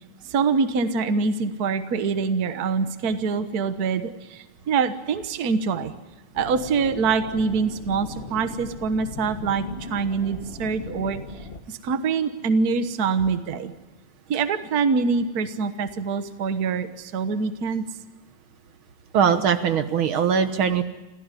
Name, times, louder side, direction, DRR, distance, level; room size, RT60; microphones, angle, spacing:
voice 1, 0.2-5.9 6.3-9.6 9.9-11.2 11.7-13.7 14.3-17.8, right 5 dB, 85° right, 10 dB, 0.8 m, -25 dB
sound 1, 6.3-11.6, left 3 dB, 55° left, 0.6 m, -38 dB
voice 2, 19.1-20.8, right 7 dB, 65° right, 10 dB, 1.3 m, -21 dB
27.0 x 15.5 x 9.9 m, 1.1 s
omnidirectional pair, 3.6 m